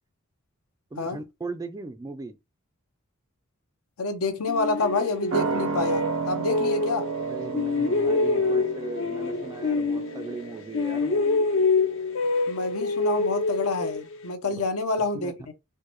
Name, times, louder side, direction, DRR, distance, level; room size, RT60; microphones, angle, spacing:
voice 1, 0.9-2.4 7.2-11.3 14.5-14.6 15.1-15.5, right 3 dB, 15° right, 0.3 m, -38 dB
voice 2, 4.0-7.0 12.5-15.5, left 3 dB, 85° left, 0.8 m, -28 dB
sound 1, 4.5-7.2 7.5-10.5 10.7-14.3, left 3 dB, 65° left, 0.5 m, -26 dB
sound 2, 5.3-12.4 12.7-12.8, right 4 dB, 70° right, 0.6 m, -33 dB
4.6 x 2.2 x 2.9 m
head